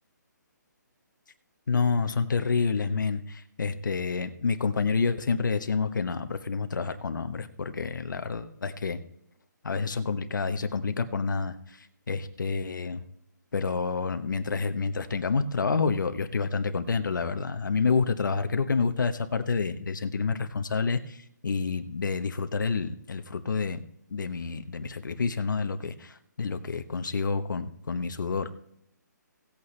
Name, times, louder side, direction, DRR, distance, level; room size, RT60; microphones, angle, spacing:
voice 1, 1.7-9.0 9.6-11.8 12.1-13.0 13.5-23.8 24.1-28.5, left 4 dB, 85° left, 8 dB, 0.9 m, -28 dB
17.0 x 8.3 x 3.3 m, 0.72 s
hypercardioid pair, 175°, 10 cm